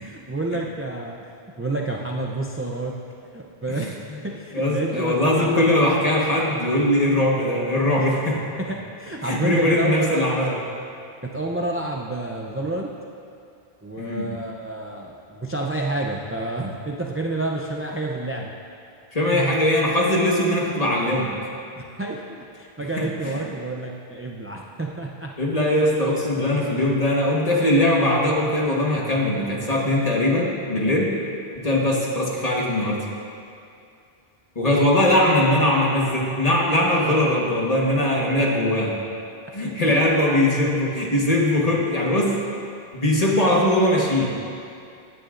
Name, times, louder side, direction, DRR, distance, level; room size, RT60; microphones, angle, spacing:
voice 1, 0.0-1.2 1.6-2.9 3.3-4.0 4.2-5.9 8.0-8.2 8.6-10.3 11.2-12.9 13.8-18.5 19.3-19.6 21.7-25.4 38.4-38.5 39.8-40.0, right 2 dB, 20° right, -1 dB, 0.4 m, -29 dB
voice 2, 4.5-8.4 9.2-10.5 14.0-14.3 19.1-21.3 23.0-23.4 25.4-31.1 31.5-33.0 34.5-38.9 39.5-42.4 42.9-44.3, left 1 dB, 35° left, -3 dB, 1.5 m, -21 dB
17.0 x 9.6 x 2.5 m, 2.5 s
omnidirectional pair, 1.1 m